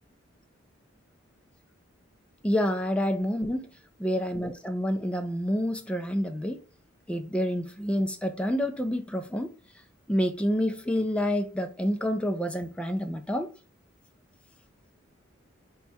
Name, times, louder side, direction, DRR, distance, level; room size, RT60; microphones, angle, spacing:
voice 1, 2.4-3.7 4.0-6.6 7.1-9.5 10.1-13.5, equal, 5° left, 0.4 m, -28 dB
4.1 x 2.3 x 4.5 m
head